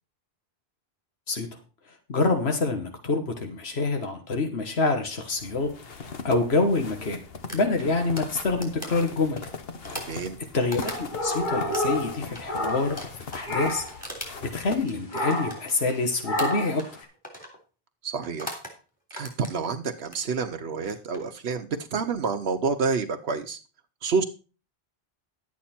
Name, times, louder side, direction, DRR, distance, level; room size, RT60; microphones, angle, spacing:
voice 1, 2.1-7.2 7.5-9.4 10.5-13.8 14.5-17.0, left 3 dB, 90° left, 5 dB, 1.7 m, -26 dB
sound 1, 5.4-14.8, left 5 dB, 70° left, 1.3 m, -40 dB
sound 2, 7.5-11.4 11.7-16.0 16.4-17.0 17.2-17.6 18.2-18.7 19.1-20.2 20.8-21.2, equal, 10° left, 3.3 m, -39 dB
voice 2, 9.9-10.4 18.0-18.6 19.1-23.6 24.0-24.2, right 5 dB, 85° right, 6 dB, 1.1 m, -28 dB
sound 3, 10.7-13.2 13.5-14.0 15.1-15.7 16.2-16.8, left 1 dB, 50° left, 1.8 m, -29 dB
11.5 x 8.7 x 4.3 m, 0.35 s
omnidirectional pair, 1.0 m